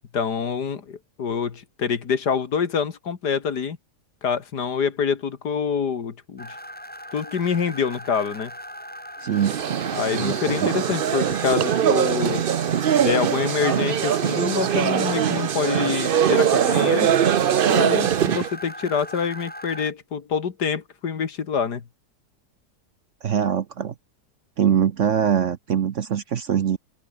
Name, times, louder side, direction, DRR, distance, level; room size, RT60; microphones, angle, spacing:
voice 1, 0.1-3.8 4.2-6.6 7.1-8.5 9.9-12.5 13.0-17.1 17.7-21.8, left 6 dB, 70° left, 2.4 m, -26 dB
sound 1, 6.4-19.9, equal, 5° left, 5.3 m, -39 dB
voice 2, 9.2-9.6 10.1-10.7 23.2-23.9 24.6-26.8, right 8 dB, 55° right, 1.0 m, -23 dB
sound 2, 9.4-18.5, right 9 dB, 80° right, 0.4 m, -22 dB
omnidirectional pair, 1.8 m